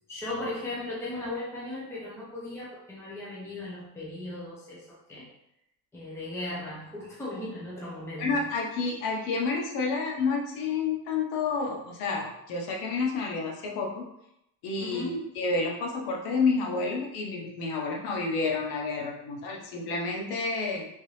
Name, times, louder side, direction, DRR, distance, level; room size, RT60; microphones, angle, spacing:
voice 1, 0.1-5.3 5.9-8.4 14.8-15.3, left 1 dB, 5° left, -6 dB, 0.7 m, -37 dB
voice 2, 8.2-14.1 14.6-20.9, left 4 dB, 90° left, -1 dB, 0.9 m, -29 dB
3.6 x 2.7 x 3.2 m, 0.81 s
cardioid pair, 160°, 36 cm